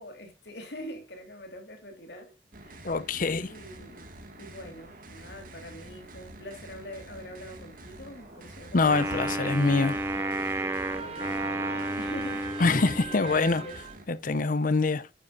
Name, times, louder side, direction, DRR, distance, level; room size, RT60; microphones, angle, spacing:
voice 1, 0.0-2.3 2.6-2.8 3.4-4.1 4.4-9.6 10.6-12.4 13.0-13.8, left 1 dB, 65° left, 3.4 m, -44 dB
sound 1, 2.5-14.1, right 2 dB, 50° right, 2.1 m, -47 dB
voice 2, 2.8-3.5 8.7-10.0 12.6-13.6 14.1-15.1, left 3 dB, 50° left, 0.6 m, -25 dB
sound 2, 8.7-14.0, right 4 dB, 35° right, 1.6 m, -40 dB
Wind instrument woodwind instrument, 8.9-13.3, right 1 dB, 15° right, 0.5 m, -32 dB
10.0 x 9.8 x 2.7 m
head